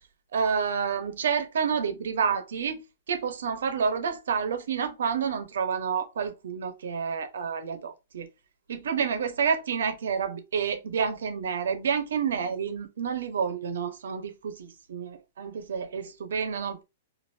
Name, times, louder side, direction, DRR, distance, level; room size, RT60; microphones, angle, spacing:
voice 1, 0.3-2.8 3.1-8.3 8.7-16.8, right 6 dB, 85° right, 0.7 m, -29 dB
2.6 x 2.4 x 3.2 m
hypercardioid pair, 155°, 0 cm